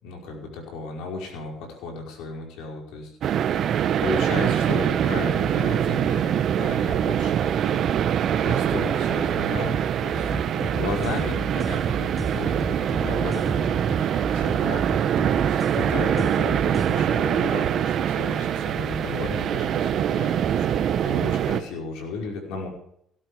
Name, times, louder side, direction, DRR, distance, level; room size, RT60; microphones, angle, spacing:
voice 1, 0.0-3.6 4.0-8.1 8.4-13.9 14.3-20.6 21.0-22.7, left 3 dB, 85° left, 2 dB, 5.2 m, -34 dB
sound 1, 3.2-21.6, right 9 dB, 60° right, 1.1 m, -24 dB
sound 2, 10.2-16.9, right 3 dB, 15° right, 1.0 m, -32 dB
18.0 x 12.5 x 5.0 m, 0.69 s
cardioid pair, 100°, 0 cm